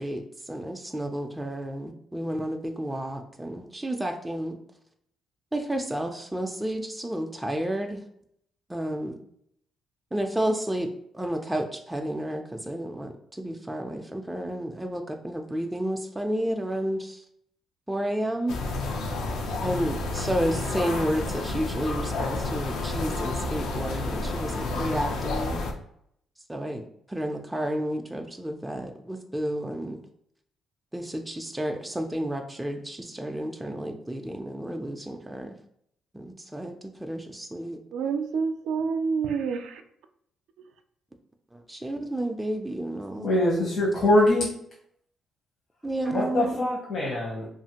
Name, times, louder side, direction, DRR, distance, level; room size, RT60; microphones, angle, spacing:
voice 1, 0.0-4.6 5.5-8.0 8.7-9.2 10.1-17.2 17.9-18.6 19.6-25.6 26.5-26.8 27.1-30.0 30.9-35.5 36.1-36.7 37.0-37.8 41.5-43.3 45.8-46.5, right 1 dB, 10° right, 3 dB, 0.3 m, -31 dB
sound 1, 18.5-25.7, left 3 dB, 85° left, 0.5 m, -30 dB
voice 2, 37.9-39.8 40.6-40.7, right 5 dB, 85° right, 7 dB, 0.3 m, -28 dB
voice 3, 43.2-44.5 46.1-47.5, left 1 dB, 55° left, -4 dB, 0.8 m, -23 dB
2.7 x 2.4 x 2.8 m, 0.71 s
cardioid pair, 90°, 0 cm